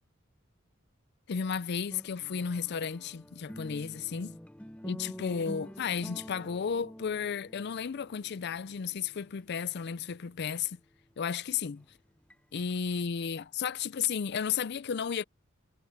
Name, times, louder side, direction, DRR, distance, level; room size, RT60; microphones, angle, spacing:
voice 1, 1.3-4.4 4.8-10.8 11.2-11.8 12.5-15.2, left 7 dB, 55° left, 0.5 m, -33 dB
sound 1, 1.9-10.9 11.8-12.7, equal, 5° left, 0.7 m, -47 dB
head